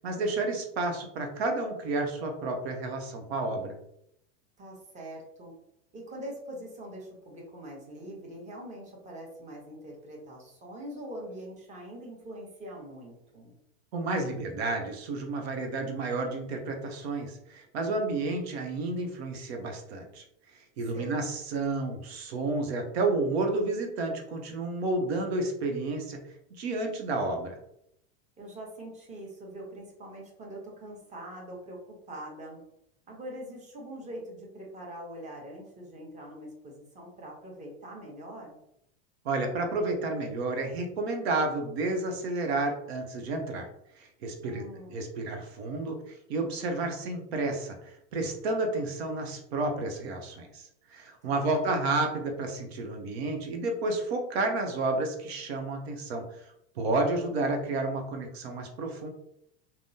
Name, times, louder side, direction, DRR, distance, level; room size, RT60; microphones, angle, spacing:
voice 1, 0.0-3.8 13.9-20.2 20.5-26.2 26.6-27.6 39.2-43.7 44.0-44.6 44.9-56.4 56.7-59.1, right 2 dB, 85° right, 3 dB, 0.8 m, -31 dB
voice 2, 4.6-5.5 5.9-13.5 20.9-21.3 28.4-32.6 33.1-38.6 44.4-45.0 51.2-51.6, right 1 dB, 25° right, -2 dB, 1.0 m, -43 dB
3.5 x 2.1 x 2.7 m, 0.76 s
supercardioid pair, 120°, 31 cm